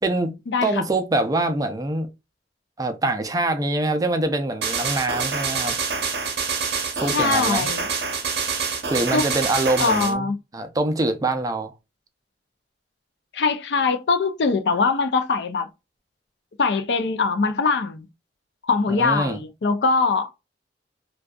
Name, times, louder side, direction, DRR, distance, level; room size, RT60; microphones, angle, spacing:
voice 1, 0.0-2.1 2.8-5.7 6.9-7.7 8.9-11.7 18.9-19.4, right 2 dB, 20° right, 0.4 m, -24 dB
sound 1, 4.6-10.1, right 5 dB, 65° right, 0.6 m, -26 dB
voice 2, 7.1-7.9 9.1-9.2 9.8-10.3 13.3-15.7 16.6-18.1 18.7-20.3, left 4 dB, 75° left, 0.5 m, -22 dB
2.6 x 2.3 x 2.2 m
head